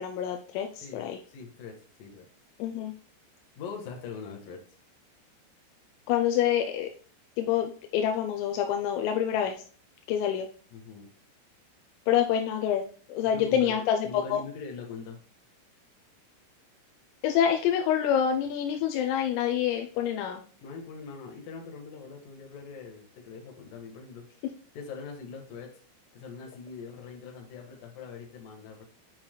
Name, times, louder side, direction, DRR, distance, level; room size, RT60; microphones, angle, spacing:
voice 1, 0.0-1.2 2.6-2.9 6.1-6.9 7.4-9.6 10.1-10.5 12.1-12.8 13.1-14.4 17.2-20.4, left 9 dB, 85° left, 5 dB, 3.3 m, -27 dB
voice 2, 0.8-1.7 2.0-2.3 3.5-4.6 10.7-11.1 13.2-15.2 20.6-24.2 24.7-25.7 26.1-28.8, left 5 dB, 65° left, 1 dB, 2.3 m, -42 dB
8.6 x 5.6 x 2.2 m, 0.42 s
omnidirectional pair, 6.0 m